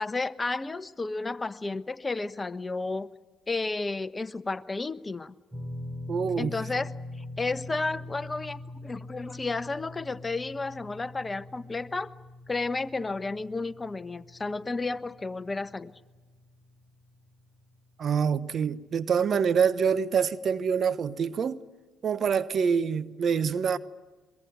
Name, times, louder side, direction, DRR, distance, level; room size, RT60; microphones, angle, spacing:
voice 1, 0.0-3.1 3.5-5.3 6.4-6.9 7.2-12.1 12.5-15.9, left 3 dB, 25° left, 1.1 m, -32 dB
sound 1, 5.5-17.8 18.0-18.3 19.9-20.0, left 2 dB, 20° right, 3.3 m, -43 dB
voice 2, 6.1-6.5 18.0-21.6 22.0-23.8, right 6 dB, 50° right, 1.0 m, -26 dB
23.0 x 23.0 x 9.5 m
hypercardioid pair, 50°, 0 cm